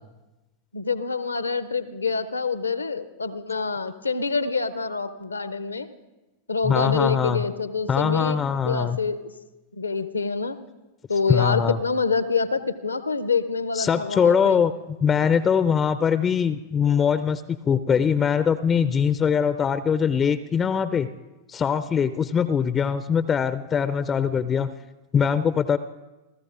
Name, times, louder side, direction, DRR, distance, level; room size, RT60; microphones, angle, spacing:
voice 1, 0.7-5.9 6.5-9.3 9.7-10.6 11.1-14.6, left 4 dB, 80° left, 13 dB, 0.6 m, -26 dB
voice 2, 6.6-7.4 7.9-9.0 11.3-11.8 13.7-14.7 15.0-21.1 21.5-24.7 25.1-25.8, left 7 dB, 20° left, 14 dB, 0.4 m, -22 dB
29.0 x 14.0 x 2.5 m, 1.1 s
figure-of-eight pair, 90°, 0 cm